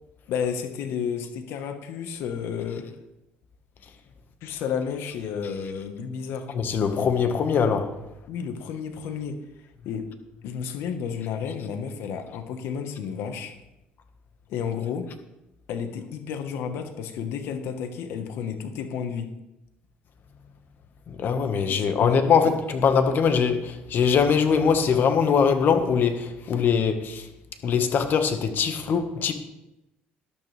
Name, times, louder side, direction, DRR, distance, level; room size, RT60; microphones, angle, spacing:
voice 1, 0.3-2.9 4.4-6.5 8.3-9.4 9.8-10.1 10.4-13.5 14.5-15.1 15.7-19.3 21.7-22.2, left 7 dB, 75° left, 1.4 m, -31 dB
voice 2, 6.5-7.9 21.1-27.3 27.6-29.3, left 6 dB, 55° left, 1.6 m, -22 dB
12.5 x 12.0 x 3.5 m
supercardioid pair, 90°, 4 cm